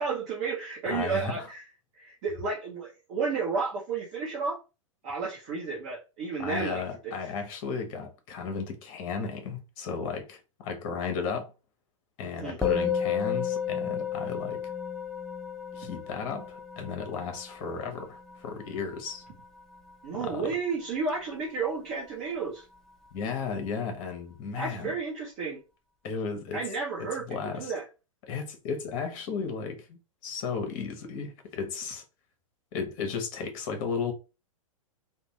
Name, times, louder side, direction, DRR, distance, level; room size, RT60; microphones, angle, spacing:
voice 1, 0.0-1.6 1.9-4.6 5.0-7.1 12.3-12.6 20.0-22.6 24.5-25.6 26.5-27.8, right 4 dB, 40° right, 0.9 m, -32 dB
voice 2, 0.9-1.5 6.4-11.5 12.2-14.6 15.7-19.2 20.1-20.5 23.1-24.9 26.0-26.6 27.0-27.7 28.3-32.0 32.7-34.1, left 5 dB, 40° left, 0.8 m, -34 dB
Musical instrument, 12.6-22.1, left 7 dB, ahead, 0.3 m, -34 dB
2.5 x 2.2 x 3.0 m
figure-of-eight pair, 100°, 17 cm